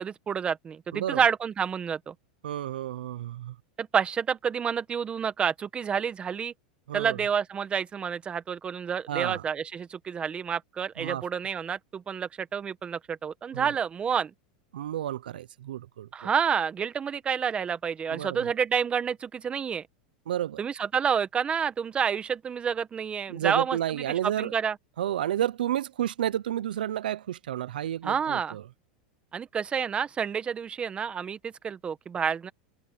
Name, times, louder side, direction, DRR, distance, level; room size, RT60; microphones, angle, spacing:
voice 1, 0.0-2.1 3.8-6.5 6.9-14.3 16.1-19.8 20.6-24.8 28.0-28.6 29.3-32.5, right 7 dB, 20° right, 1.5 m, -29 dB
voice 2, 2.4-3.5 6.9-7.2 9.1-9.4 11.0-11.2 13.5-13.7 14.7-16.3 18.1-18.5 20.3-20.6 23.3-24.5 25.0-28.6, right 11 dB, 90° right, 0.7 m, -31 dB
supercardioid pair, 120°, 5 cm